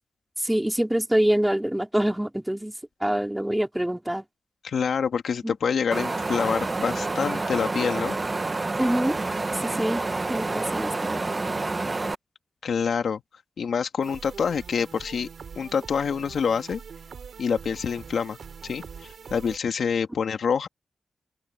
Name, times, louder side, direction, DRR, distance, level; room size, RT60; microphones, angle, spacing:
voice 1, 0.4-2.7 3.0-4.2 5.4-5.5 8.8-9.2 9.6-10.0 10.3-11.2, right 1 dB, 10° right, 3.4 m, -25 dB
voice 2, 4.6-8.2 12.6-13.2 13.6-15.3 15.6-16.8 17.4-18.4 18.6-18.8 19.3-20.7, left 6 dB, 80° left, 2.1 m, -26 dB
Wind, 5.9-12.1, right 3 dB, 35° right, 1.0 m, -28 dB
sound 1, 14.0-19.6, right 6 dB, 80° right, 2.9 m, -43 dB
open air
cardioid pair, 55°, 0 cm